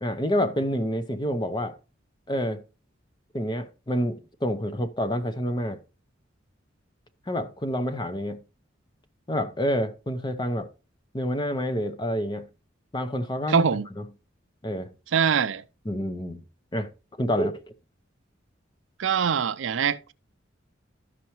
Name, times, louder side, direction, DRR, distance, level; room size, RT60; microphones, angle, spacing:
voice 1, 0.0-1.8 2.3-2.6 3.3-5.8 7.3-8.4 9.3-10.7 11.1-12.5 12.9-13.6 14.0-14.1 14.6-14.9 15.8-16.4 16.7-16.9 17.2-17.6, equal, 25° left, 0.7 m, -28 dB
voice 2, 13.5-13.9 15.1-15.6 19.0-20.1, right 7 dB, 80° right, 0.5 m, -23 dB
12.5 x 5.7 x 3.0 m
head